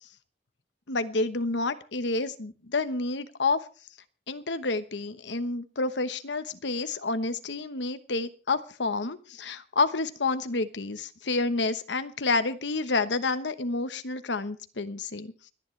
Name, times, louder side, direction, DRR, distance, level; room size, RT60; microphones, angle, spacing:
voice 1, 0.9-3.6 4.3-15.3, left 3 dB, 85° left, 11 dB, 1.1 m, -29 dB
29.5 x 10.0 x 3.3 m, 0.37 s
head